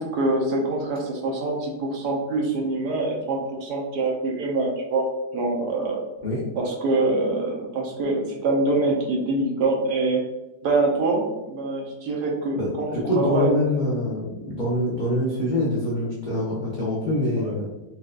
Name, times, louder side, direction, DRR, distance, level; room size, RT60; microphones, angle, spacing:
voice 1, 0.0-5.1 5.3-6.0 6.6-10.2 10.6-12.9 13.2-13.5 17.4-17.6, right 2 dB, 80° right, -1 dB, 1.3 m, -24 dB
voice 2, 12.5-17.7, left 1 dB, 70° left, -7 dB, 0.4 m, -25 dB
4.0 x 2.3 x 2.4 m, 1.0 s
omnidirectional pair, 1.8 m